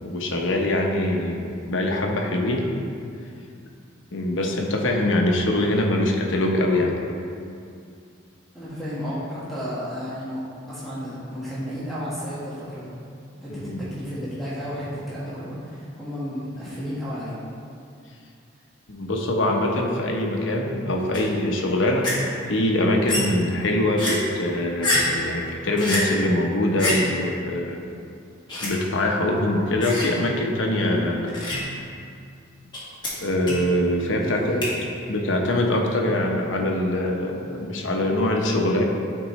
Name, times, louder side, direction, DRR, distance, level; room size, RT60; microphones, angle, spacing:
voice 1, 0.0-2.7 4.1-6.9 13.5-13.8 18.9-22.1 22.5-27.9 28.6-31.3 33.2-34.7 35.1-38.8, left 1 dB, 75° left, 1 dB, 0.9 m, -23 dB
voice 2, 8.5-12.9 13.4-17.3 34.1-34.6, equal, ahead, -11 dB, 1.4 m, -33 dB
sound 1, 21.1-21.2 22.0-22.1 23.1-23.5 24.0-24.1 24.8-25.2 25.8-26.0 26.8-27.2 28.5-28.7 29.8-30.3 31.3-31.8 32.7-32.8 33.0-33.1 33.5-33.8 34.6-34.7, left 1 dB, 20° left, 1.6 m, -26 dB
10.0 x 4.5 x 3.2 m, 2.4 s
head